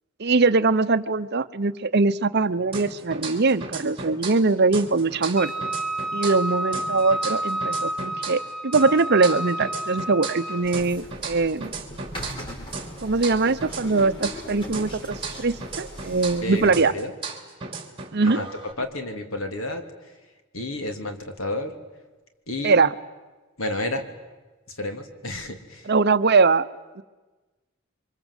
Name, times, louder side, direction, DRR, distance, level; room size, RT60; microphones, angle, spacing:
voice 1, 0.2-5.5 6.1-11.7 13.0-16.9 18.1-18.4 22.6-22.9 25.9-26.7 27.0-27.1, right 3 dB, 55° right, 13 dB, 0.8 m, -22 dB
sound 1, 2.7-4.5 4.7-8.5 8.7-12.5 12.7-16.5 16.7-18.7, right 4 dB, 25° right, 3.1 m, -36 dB
Wind instrument woodwind instrument, 5.4-10.7, right 1 dB, 5° left, 1.1 m, -30 dB
sound 2, 10.6-16.7, equal, 25° left, 5.6 m, -40 dB
voice 2, 16.4-17.1 18.2-18.5 18.8-21.7 22.5-22.8 23.6-24.1 24.7-25.9, left 1 dB, 80° left, 6 dB, 3.0 m, -31 dB
28.5 x 24.5 x 8.2 m, 1.2 s
head